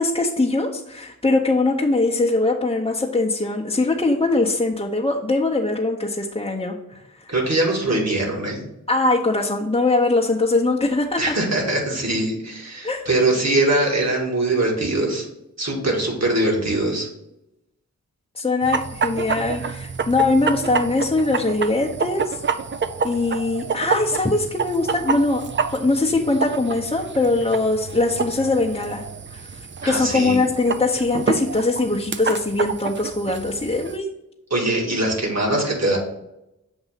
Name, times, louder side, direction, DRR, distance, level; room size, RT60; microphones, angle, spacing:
voice 1, 0.0-6.7 7.2-7.3 8.9-11.3 12.8-13.1 18.4-22.4 23.0-25.5 25.7-29.0 29.3-34.1, left 2 dB, 15° left, -3 dB, 0.7 m, -21 dB
voice 2, 7.3-8.6 11.2-15.3 15.6-17.1 29.8-30.4 34.5-36.0, right 2 dB, 50° right, -1 dB, 2.0 m, -22 dB
sound 1, 18.6-34.0, right 5 dB, 35° right, 0.5 m, -28 dB
7.0 x 2.6 x 5.7 m, 0.87 s
cardioid pair, 45°, 34 cm